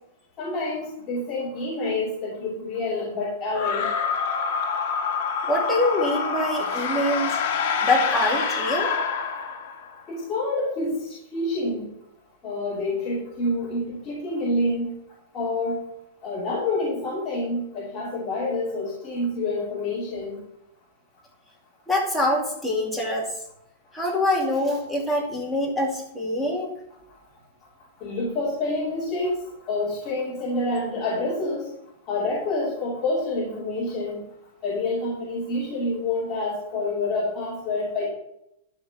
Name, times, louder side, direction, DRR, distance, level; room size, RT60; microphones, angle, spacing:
voice 1, 0.4-3.9 10.1-11.9 12.4-14.9 15.3-15.8 16.2-20.4 28.0-29.4 29.6-31.7 32.1-34.2 34.6-38.1, left 2 dB, 20° left, -7 dB, 2.8 m, -27 dB
sound 1, 3.5-10.0, left 5 dB, 45° left, 1.7 m, -26 dB
voice 2, 5.5-7.4 7.8-8.9 21.9-23.3 23.9-26.7, left 1 dB, ahead, -4 dB, 2.4 m, -24 dB
13.0 x 4.9 x 7.6 m, 0.82 s
supercardioid pair, 175°, 0 cm